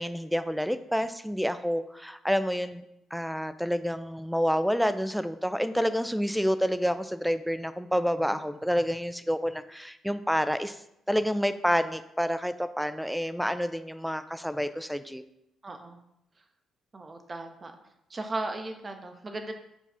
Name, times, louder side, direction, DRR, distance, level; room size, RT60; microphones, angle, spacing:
voice 1, 0.0-2.8 3.1-10.8 11.1-15.2, equal, ahead, 12 dB, 0.4 m, -28 dB
voice 2, 15.6-16.0 16.9-17.7 18.1-19.5, right 2 dB, 30° right, 5 dB, 0.8 m, -36 dB
7.0 x 2.4 x 5.6 m, 0.81 s
cardioid pair, 90°, 0 cm